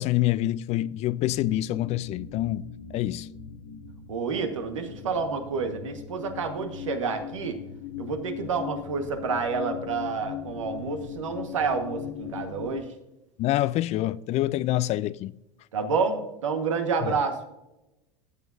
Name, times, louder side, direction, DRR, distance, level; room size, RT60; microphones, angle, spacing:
voice 1, 0.0-2.6 2.9-3.3 13.4-15.3 17.0-17.1, left 15 dB, 45° left, 0.4 m, -26 dB
sound 1, 1.3-12.8, left 9 dB, 65° left, 1.2 m, -39 dB
voice 2, 4.1-7.6 8.0-12.9 15.7-17.4, right 5 dB, 90° right, 1.4 m, -29 dB
15.5 x 6.8 x 2.6 m
hypercardioid pair, 90°, 16 cm